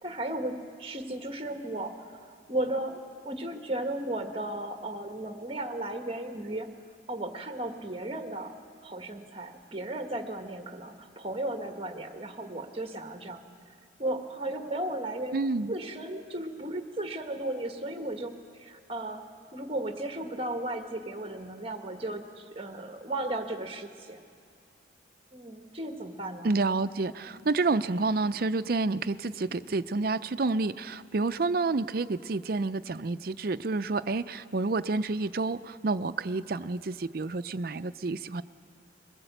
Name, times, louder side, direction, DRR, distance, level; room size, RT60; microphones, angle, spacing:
voice 1, 0.0-6.7 7.1-8.6 8.8-13.5 14.0-19.2 19.5-24.2 25.3-26.5 27.3-27.4, right 1 dB, 30° right, 6 dB, 1.4 m, -35 dB
voice 2, 15.3-15.7 26.4-38.4, right 3 dB, 50° right, 12 dB, 0.5 m, -29 dB
22.0 x 19.5 x 8.0 m, 2.2 s
head